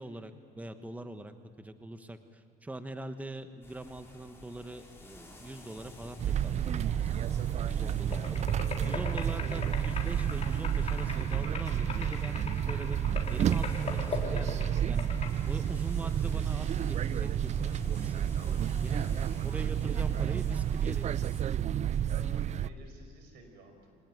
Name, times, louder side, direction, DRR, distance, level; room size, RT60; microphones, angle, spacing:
voice 1, 0.0-7.3 7.7-8.5 8.8-13.0 13.3-15.1 15.5-19.1 19.4-21.6, right 1 dB, 10° right, 9 dB, 1.2 m, -43 dB
sound 1, 3.6-21.4, left 2 dB, 15° left, 6.2 m, -52 dB
sound 2, 6.2-22.7, right 9 dB, 40° right, 0.5 m, -30 dB
sound 3, 8.1-15.3, left 5 dB, 40° left, 3.9 m, -40 dB
voice 2, 18.9-19.3 21.9-24.0, right 3 dB, 85° right, 5 dB, 5.4 m, -54 dB
25.0 x 19.0 x 9.3 m, 2.3 s
cardioid pair, 110°, 17 cm